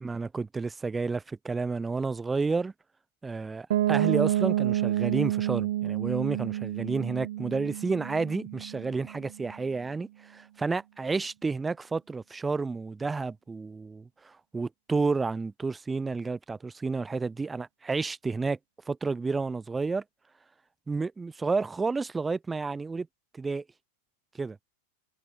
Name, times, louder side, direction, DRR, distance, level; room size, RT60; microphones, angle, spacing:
voice 1, 0.0-2.7 3.2-18.6 18.9-20.0 20.9-23.1 23.3-23.6 24.4-24.6, right 4 dB, 5° right, 0.5 m, -31 dB
Piano, 3.7-9.4, right 13 dB, 65° right, 0.7 m, -29 dB
supercardioid pair, 180°, 0 cm